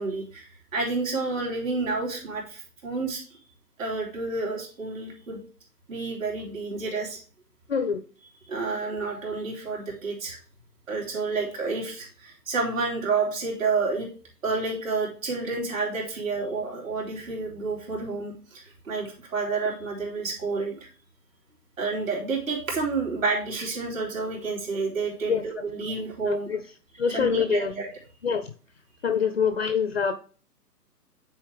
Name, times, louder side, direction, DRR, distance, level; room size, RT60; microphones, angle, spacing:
voice 1, 0.0-3.2 3.8-5.4 5.9-7.2 8.5-10.4 10.9-14.1 14.4-20.9 21.8-26.5 27.1-27.9, right 4 dB, 50° right, -1 dB, 3.0 m, -29 dB
voice 2, 7.7-8.0 25.3-25.4 26.3-26.6 27.0-27.7 28.2-28.5 29.0-30.1, left 6 dB, 40° left, 10 dB, 0.5 m, -25 dB
9.3 x 4.3 x 3.4 m, 0.39 s
figure-of-eight pair, 135°, 49 cm